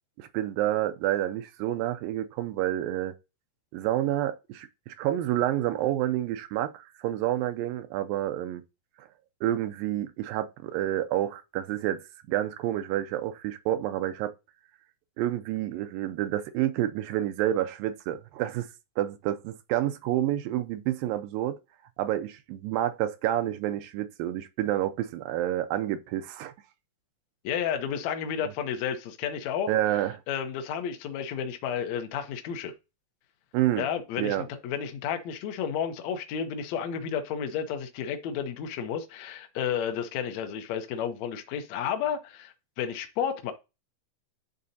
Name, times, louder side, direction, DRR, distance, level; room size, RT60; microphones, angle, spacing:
voice 1, 0.2-3.1 3.7-8.6 9.0-9.1 9.4-14.3 15.2-18.7 19.0-21.6 22.0-26.5 29.7-30.2 33.5-33.9 34.2-34.5, right 13 dB, 80° right, 2.2 m, -29 dB
voice 2, 27.4-29.7 30.3-32.7 33.8-43.5, left 8 dB, 80° left, 1.6 m, -32 dB
10.5 x 3.9 x 2.7 m
omnidirectional pair, 4.3 m